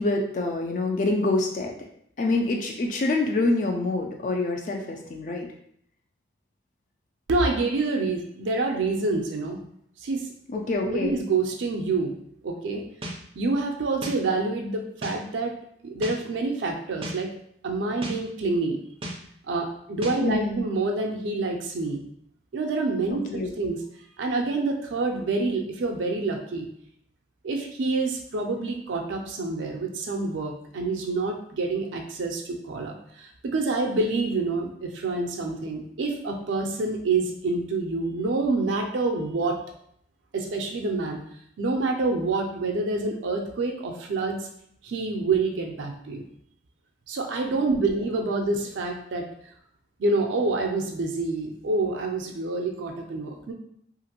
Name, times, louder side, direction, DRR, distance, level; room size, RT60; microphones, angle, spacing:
voice 1, 0.0-1.8 2.2-5.5 10.5-11.2 20.2-20.6 23.1-23.7 47.9-48.0, left 2 dB, 45° left, 2 dB, 0.3 m, -26 dB
voice 2, 7.3-9.6 10.0-10.3 10.8-12.8 13.4-15.5 15.8-17.3 17.6-18.8 19.5-22.0 22.5-23.8 24.2-26.7 27.4-39.6 40.3-41.2 41.6-44.5 44.8-46.2 47.1-49.3 50.0-53.5, right 3 dB, 90° right, 2 dB, 0.4 m, -27 dB
sound 1, 13.0-13.2 14.0-14.2 15.0-15.2 16.0-16.2 17.0-17.2 18.0-18.2 19.0-19.2 20.0-20.2, right 1 dB, 30° right, 0.4 m, -33 dB
2.8 x 2.5 x 2.8 m, 0.69 s
head